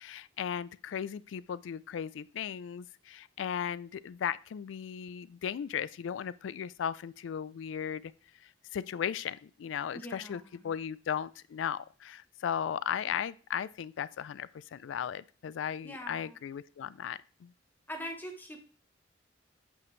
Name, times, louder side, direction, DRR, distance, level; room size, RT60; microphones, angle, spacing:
voice 1, 0.0-8.1 8.7-17.5, left 8 dB, 85° left, 19 dB, 0.3 m, -36 dB
voice 2, 9.9-10.8 15.8-16.4 17.9-18.6, equal, 10° left, 4 dB, 1.1 m, -43 dB
8.3 x 4.9 x 3.2 m, 0.39 s
head